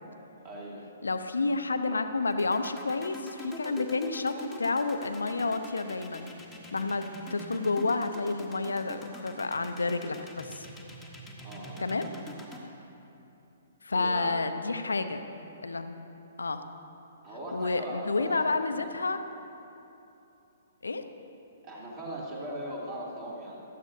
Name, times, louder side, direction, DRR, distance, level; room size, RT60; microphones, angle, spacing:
voice 1, 0.4-0.8 11.4-11.8 13.9-14.3 17.2-18.9 21.6-23.6, right 1 dB, 30° right, -5 dB, 2.8 m, -39 dB
voice 2, 1.0-6.3 6.7-10.7 11.8-12.1 13.8-15.2 15.6-16.0 16.4-16.6 17.5-19.2 20.8-21.0, left 3 dB, 70° left, 8 dB, 0.7 m, -30 dB
sound 1, 2.3-12.6, equal, ahead, 1.3 m, -43 dB
17.5 x 12.5 x 2.8 m, 2.9 s
figure-of-eight pair, 120°, 0 cm